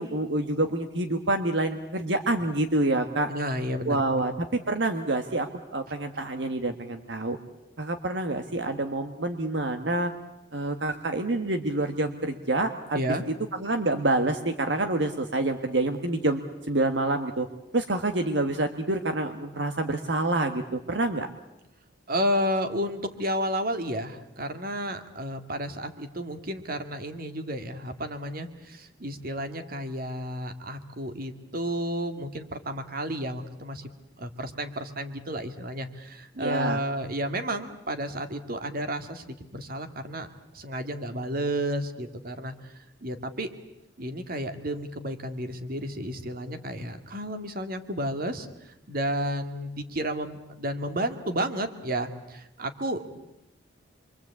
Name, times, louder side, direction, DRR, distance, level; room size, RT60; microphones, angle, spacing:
voice 1, 0.0-3.3 3.8-7.4 7.8-10.1 10.5-13.0 13.5-16.4 16.7-17.5 17.7-21.3 36.4-36.8, right 2 dB, 70° right, 7 dB, 1.6 m, -27 dB
voice 2, 3.3-4.2 12.9-13.2 22.1-33.9 34.2-40.3 40.5-42.7 43.0-43.5 44.0-53.2, equal, 50° right, 8 dB, 2.1 m, -32 dB
27.0 x 24.0 x 8.4 m, 0.89 s
head